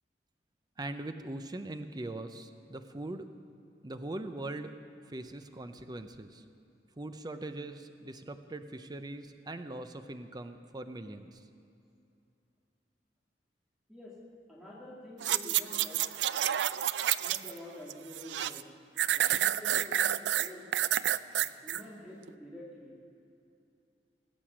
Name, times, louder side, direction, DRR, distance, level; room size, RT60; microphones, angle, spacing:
voice 1, 0.8-3.3 3.8-4.7 5.1-6.4 7.0-11.5, right 2 dB, 25° right, 8 dB, 0.6 m, -41 dB
voice 2, 14.5-16.0 16.3-16.4 17.2-18.6 19.1-20.7 21.4-22.9, left 1 dB, 5° right, -5 dB, 2.0 m, -48 dB
sound 1, 15.2-17.6 17.9-18.6 19.0-21.8 22.3-22.4, right 11 dB, 70° right, 0.4 m, -29 dB
20.0 x 8.4 x 6.2 m, 2.6 s
head